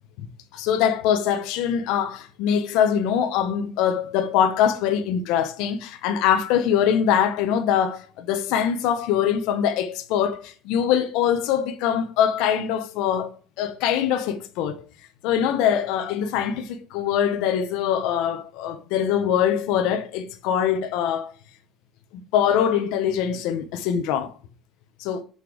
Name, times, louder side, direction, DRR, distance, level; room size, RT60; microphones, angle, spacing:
voice 1, 0.5-13.3 13.6-14.8 15.2-21.3 22.3-24.3 25.0-25.2, left 9 dB, 80° left, 1.0 m, -23 dB
6.1 x 5.4 x 4.8 m
cardioid pair, 140°, 0 cm